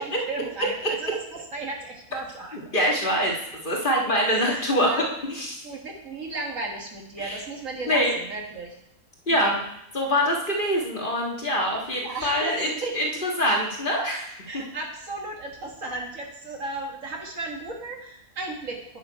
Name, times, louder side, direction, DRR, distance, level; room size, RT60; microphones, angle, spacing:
voice 1, 0.0-2.6 4.2-5.2 5.6-8.8 9.3-9.6 11.9-12.9 14.5-18.8, right 2 dB, 60° right, 0 dB, 1.9 m, -35 dB
voice 2, 2.7-3.3 3.6-4.9 5.3-5.6 7.2-7.4 7.9-8.1 9.3-9.6 9.9-14.6, equal, 35° left, -2 dB, 1.7 m, -24 dB
9.6 x 6.7 x 4.6 m, 0.76 s
omnidirectional pair, 1.6 m